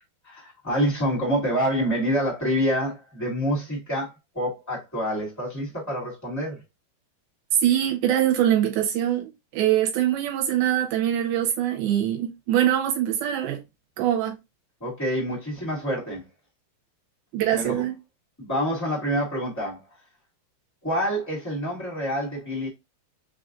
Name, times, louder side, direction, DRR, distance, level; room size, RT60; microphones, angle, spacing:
voice 1, 0.2-6.6 14.8-16.2 17.5-17.8 18.4-19.8 20.8-22.7, equal, 15° left, 0.6 m, -27 dB
voice 2, 7.6-13.6 14.0-14.4 17.3-17.9, right 11 dB, 85° right, 2.7 m, -23 dB
5.8 x 2.5 x 2.4 m
omnidirectional pair, 4.3 m